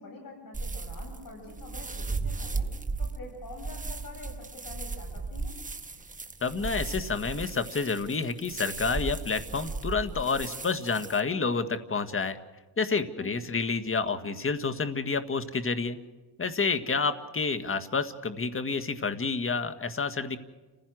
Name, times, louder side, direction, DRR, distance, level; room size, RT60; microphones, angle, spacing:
voice 1, 0.0-5.5 13.2-13.4, left 2 dB, 55° left, 2 dB, 7.9 m, -46 dB
sound 1, 0.5-11.2, right 3 dB, 20° right, 1.7 m, -36 dB
voice 2, 6.4-12.4 12.8-16.0 16.4-20.4, left 4 dB, 30° left, 9 dB, 1.9 m, -29 dB
30.0 x 16.0 x 6.3 m, 1.3 s
cardioid pair, 90°, 40 cm